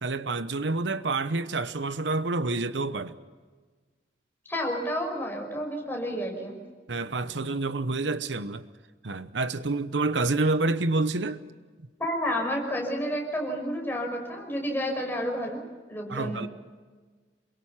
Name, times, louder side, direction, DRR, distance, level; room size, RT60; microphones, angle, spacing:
voice 1, 0.0-3.2 6.9-8.6 9.0-11.4 16.1-16.5, right 3 dB, 85° right, 0.9 m, -28 dB
voice 2, 4.5-6.6 12.0-15.6 15.9-16.5, equal, 10° left, 5.7 m, -30 dB
28.0 x 23.0 x 5.8 m
head